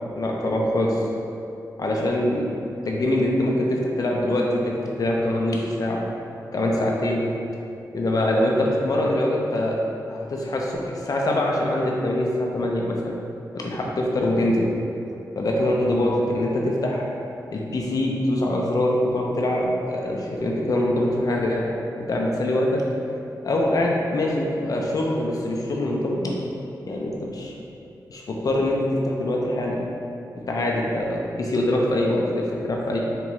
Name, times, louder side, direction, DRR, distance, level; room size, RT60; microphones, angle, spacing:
voice 1, 0.2-0.9 1.8-2.5 2.9-6.0 6.5-7.2 7.9-9.8 10.1-13.1 13.5-14.7 15.4-17.1 17.5-21.7 22.1-22.8 23.4-26.4 26.9-27.5 28.1-28.8 29.0-29.8 30.5-33.0, left 1 dB, 60° left, -1 dB, 0.5 m, -23 dB
3.7 x 2.2 x 3.0 m, 2.7 s
cardioid pair, 65°, 7 cm